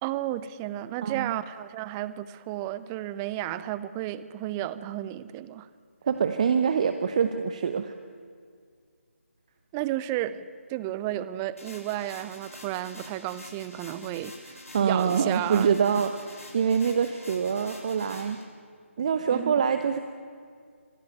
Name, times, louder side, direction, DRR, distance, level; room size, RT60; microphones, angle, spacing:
voice 1, 0.0-5.7 9.7-15.8 19.3-19.5, right 13 dB, 10° right, 16 dB, 0.5 m, -33 dB
voice 2, 1.0-1.3 6.0-7.9 14.7-18.4 19.0-20.0, right 7 dB, 30° right, 9 dB, 0.9 m, -25 dB
sound 1, 11.6-18.4, left 1 dB, 85° left, 7.5 m, -47 dB
26.0 x 17.5 x 8.9 m, 2.1 s
figure-of-eight pair, 155°, 7 cm